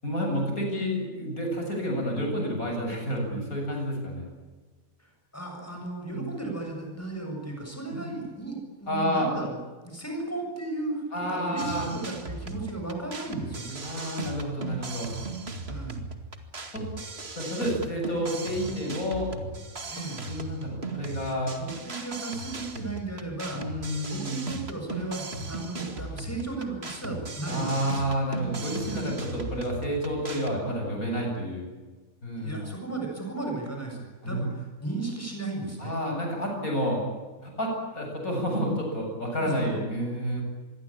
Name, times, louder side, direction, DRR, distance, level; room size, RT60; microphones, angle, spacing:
voice 1, 0.0-4.3 6.1-6.3 7.9-8.1 8.9-9.3 11.1-11.9 13.8-15.1 16.7-16.8 17.4-19.3 20.3-21.5 23.5-24.4 27.5-31.7 32.2-32.6 34.2-34.5 35.8-37.0 37.4-40.4, equal, 85° left, 1 dB, 8.5 m, -30 dB
voice 2, 5.0-13.8 15.7-16.0 19.9-20.2 21.6-28.0 32.3-35.9 39.4-39.7, right 2 dB, 10° left, 2 dB, 7.2 m, -35 dB
sound 1, 11.6-30.6, right 3 dB, 45° right, 2.5 m, -37 dB
26.5 x 22.5 x 8.8 m, 1.3 s
omnidirectional pair, 1.4 m